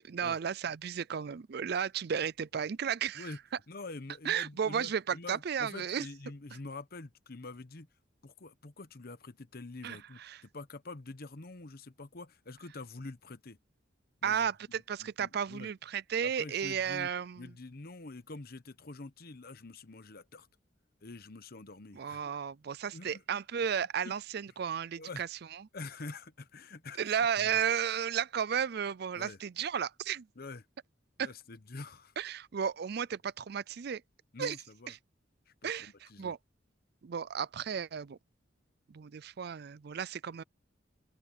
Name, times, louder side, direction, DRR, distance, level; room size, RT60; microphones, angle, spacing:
voice 1, 0.0-3.3 4.2-6.1 9.8-10.4 14.2-17.5 21.9-25.3 27.0-30.3 31.2-31.3 32.2-34.0 34.4-34.6 34.9-35.0 35.6-36.4 37.0-38.2 38.9-40.4, right 7 dB, 60° right, 0.4 m, -33 dB
voice 2, 3.7-7.9 8.2-13.6 14.2-15.7 16.2-17.1 17.4-20.5 21.0-22.2 22.9-23.2 24.0-24.1 25.0-25.2 25.7-27.5 29.2-29.4 30.4-30.6 31.2-32.1 34.3-34.9 35.5-36.3, left 3 dB, 55° left, 1.0 m, -46 dB
open air
head